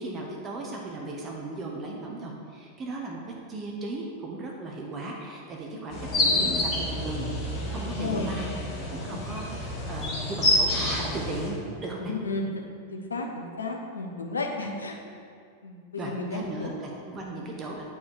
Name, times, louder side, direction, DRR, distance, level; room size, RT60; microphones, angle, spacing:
voice 1, 0.0-3.2 3.5-8.5 8.9-12.1 14.6-14.7 16.0-17.8, right 2 dB, 25° right, -1 dB, 1.0 m, -36 dB
sound 1, 5.9-11.5, left 1 dB, 30° left, 2.1 m, -28 dB
voice 2, 6.0-6.6 7.8-8.6 9.1-9.2 12.1-12.6 12.9-15.0 15.6-16.7 17.2-17.5, left 3 dB, 75° left, 2 dB, 0.9 m, -33 dB
9.8 x 4.6 x 4.7 m, 2.3 s
figure-of-eight pair, 90°, 0 cm